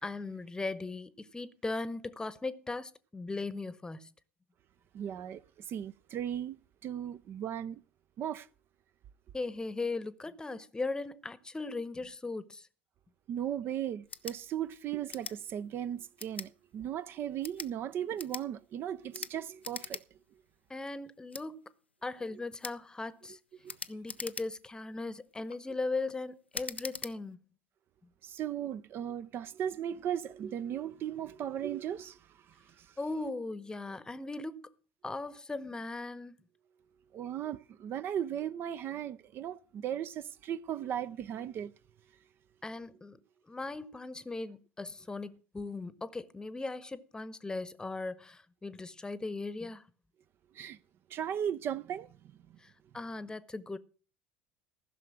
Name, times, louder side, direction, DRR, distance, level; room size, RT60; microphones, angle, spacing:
voice 1, 0.0-4.1 9.3-12.7 20.7-21.7 22.0-23.4 23.9-27.4 33.0-34.7 35.0-36.4 42.6-43.2 43.5-49.8 52.6-53.8, left 3 dB, 15° left, 1.0 m, -38 dB
voice 2, 4.9-7.8 8.2-8.5 13.3-20.0 23.6-23.8 28.2-32.9 37.1-41.7 50.5-50.8 51.1-52.1, right 10 dB, 40° right, 0.6 m, -37 dB
sound 1, 14.0-14.4 15.1-15.4 16.2-16.5 17.3-17.7 18.2-18.5 19.1-19.3 19.6-20.0 20.4-20.5 21.3-21.5 22.6-22.8 23.7-24.7 25.3-25.6 26.5-27.1, left 4 dB, 85° left, 0.6 m, -41 dB
15.0 x 6.6 x 7.7 m
figure-of-eight pair, 70°, 6 cm